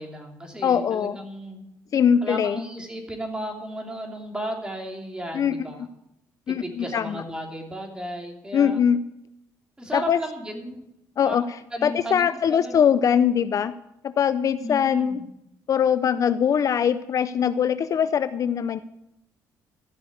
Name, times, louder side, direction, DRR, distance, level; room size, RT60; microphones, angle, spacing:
voice 1, 0.0-1.6 2.2-5.9 6.5-8.8 9.8-10.8 11.2-11.4 11.7-13.0 14.6-15.2, equal, 10° right, 2 dB, 2.9 m, -34 dB
voice 2, 0.6-1.2 1.9-2.6 5.3-5.5 6.5-7.2 8.5-9.0 9.9-10.2 11.2-11.4 11.8-13.7 14.0-15.2 15.7-18.8, left 8 dB, 50° left, 13 dB, 0.5 m, -22 dB
13.5 x 6.2 x 8.3 m, 0.82 s
cardioid pair, 95°, 7 cm